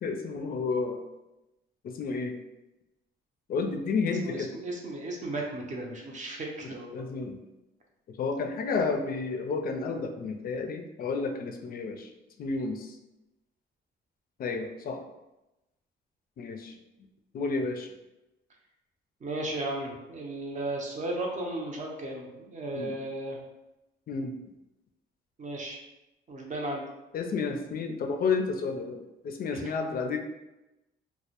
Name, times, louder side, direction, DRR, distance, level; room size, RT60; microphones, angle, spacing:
voice 1, 0.0-1.0 1.8-2.4 3.5-4.5 6.6-7.4 8.1-12.1 12.4-13.0 14.4-15.0 16.4-16.8 17.3-17.9 22.7-23.0 24.1-24.4 27.1-30.2, left 4 dB, 50° left, 5 dB, 0.4 m, -31 dB
voice 2, 4.2-7.1 19.2-23.4 25.4-25.8 26.3-26.9 29.5-29.7, right 1 dB, 40° right, 0 dB, 0.6 m, -35 dB
2.1 x 2.1 x 2.8 m, 0.96 s
cardioid pair, 90°, 20 cm